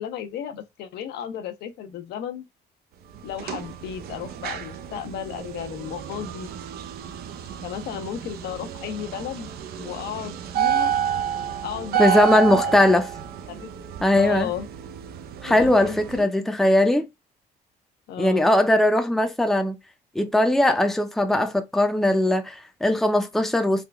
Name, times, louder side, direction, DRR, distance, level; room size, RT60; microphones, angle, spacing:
voice 1, 0.0-2.4 3.2-6.5 7.6-9.5 9.8-10.9 11.6-12.7 13.5-13.7 14.2-14.7 15.5-16.3 18.1-18.5, left 9 dB, 75° left, 0.8 m, -34 dB
sound 1, 3.1-16.2, right 9 dB, 65° right, 0.6 m, -30 dB
voice 2, 12.0-13.1 14.0-14.5 15.4-17.1 18.2-19.8 20.2-23.8, left 1 dB, ahead, 0.6 m, -20 dB
3.7 x 2.3 x 3.4 m
cardioid pair, 110°, 17 cm